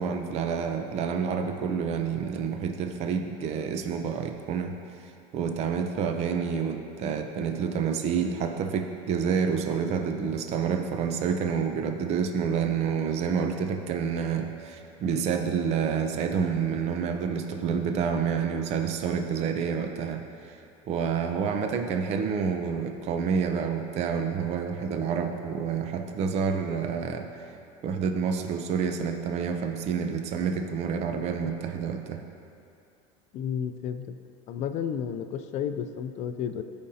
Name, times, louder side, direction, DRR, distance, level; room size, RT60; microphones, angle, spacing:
voice 1, 0.0-4.8 5.0-20.6 20.9-27.3 27.8-32.2, right 6 dB, 40° right, 5 dB, 0.5 m, -28 dB
voice 2, 33.3-34.1 34.5-36.6, left 8 dB, 40° left, 9 dB, 0.4 m, -32 dB
13.5 x 5.2 x 2.8 m, 2.6 s
supercardioid pair, 145°, 17 cm